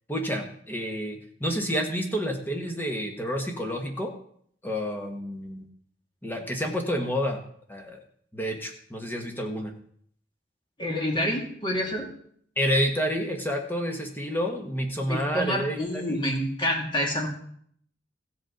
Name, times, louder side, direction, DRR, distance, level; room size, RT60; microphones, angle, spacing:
voice 1, 0.1-4.1 4.6-5.7 6.2-7.4 7.7-8.0 8.3-9.7 12.6-16.2, equal, 10° left, 2 dB, 1.4 m, -29 dB
voice 2, 10.8-12.1 15.1-17.3, equal, 25° left, 0 dB, 2.4 m, -28 dB
15.5 x 8.3 x 3.9 m, 0.63 s
head